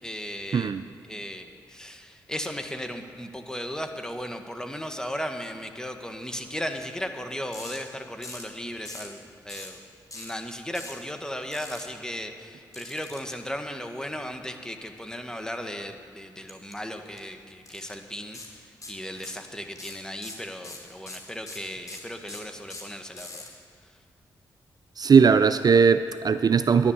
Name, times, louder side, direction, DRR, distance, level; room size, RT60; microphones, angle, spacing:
voice 1, 0.0-0.8 1.1-9.8 10.1-23.4, equal, 10° left, 5 dB, 1.6 m, -36 dB
voice 2, 0.5-0.8 25.0-26.9, right 6 dB, 50° right, 12 dB, 0.4 m, -19 dB
sound 1, 7.5-7.8 8.2-8.5 8.9-9.1 9.5-9.8 10.1-10.3 10.7-11.0 11.5-11.8 12.7-13.3 16.5-16.7 17.1-17.2 17.7-18.0 18.3-18.5 18.8-19.5 19.8-23.5, left 2 dB, 45° left, 3.1 m, -41 dB
11.5 x 10.5 x 7.3 m, 2.3 s
supercardioid pair, 45°, 8 cm